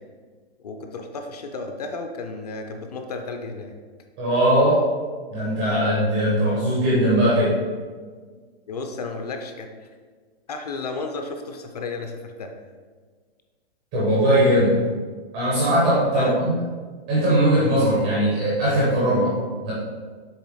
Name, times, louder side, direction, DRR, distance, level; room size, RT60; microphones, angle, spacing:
voice 1, 0.6-3.7 8.7-9.9 10.5-12.5 16.1-16.5, left 3 dB, 40° left, 5 dB, 0.6 m, -33 dB
voice 2, 4.2-4.8 5.3-7.6 13.9-14.8 15.3-16.5 17.1-19.7, right 1 dB, 5° right, -7 dB, 0.4 m, -20 dB
7.2 x 3.4 x 4.8 m, 1.5 s
hypercardioid pair, 170°, 32 cm